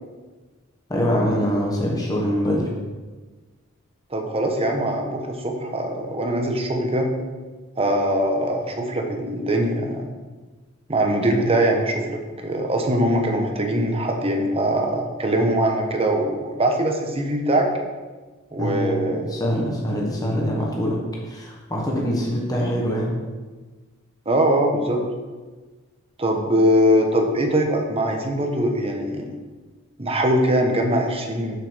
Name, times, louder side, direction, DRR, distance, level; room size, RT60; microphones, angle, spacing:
voice 1, 0.9-2.7 18.6-21.0 21.3-23.2, equal, 20° left, -3 dB, 1.5 m, -24 dB
voice 2, 4.1-7.1 7.8-10.1 10.9-17.7 18.5-19.4 24.3-25.0 26.2-29.3 30.0-31.6, right 1 dB, 30° right, 3 dB, 1.1 m, -22 dB
7.3 x 5.6 x 6.5 m, 1.3 s
head